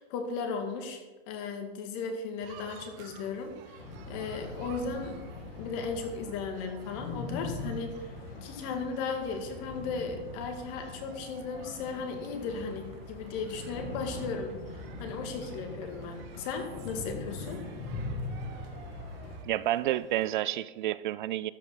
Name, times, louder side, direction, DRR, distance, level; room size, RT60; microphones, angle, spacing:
voice 1, 0.0-5.2 5.6-17.6, left 4 dB, 45° left, 4 dB, 2.1 m, -36 dB
sound 1, 2.4-20.3, right 8 dB, 35° right, 1.1 m, -53 dB
sound 2, 3.8-19.4, left 2 dB, 75° left, 2.7 m, -41 dB
voice 2, 19.4-21.5, right 14 dB, 55° right, 17 dB, 0.5 m, -30 dB
13.0 x 5.7 x 6.1 m, 1.2 s
hypercardioid pair, 130°, 30 cm